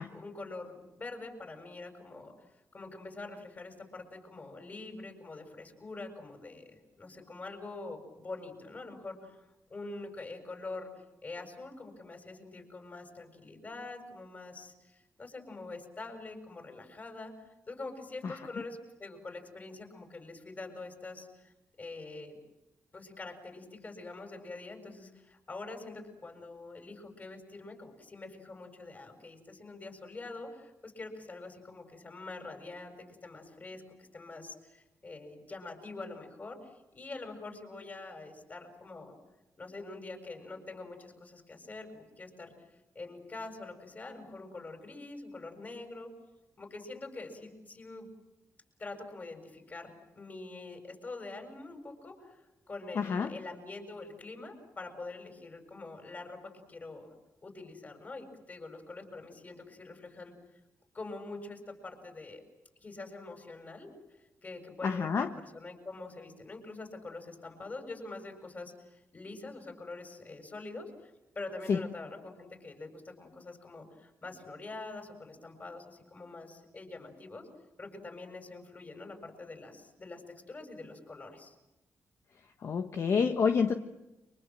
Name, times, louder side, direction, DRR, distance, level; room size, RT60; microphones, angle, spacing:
voice 1, 0.0-2.3 2.7-9.4 9.7-10.9 11.2-17.3 17.7-21.5 21.8-22.4 22.9-39.1 39.6-42.5 43.0-46.1 46.6-48.1 48.8-57.1 57.4-60.3 60.9-62.4 62.8-63.9 64.4-71.1 71.4-77.5 77.8-81.6, left 3 dB, 30° left, 5 dB, 7.1 m, -45 dB
voice 2, 52.9-53.3 64.8-65.3 71.7-71.8 82.6-83.7, left 6 dB, 60° left, 6 dB, 1.4 m, -28 dB
30.0 x 25.0 x 7.7 m, 0.95 s
cardioid pair, 110°, 5 cm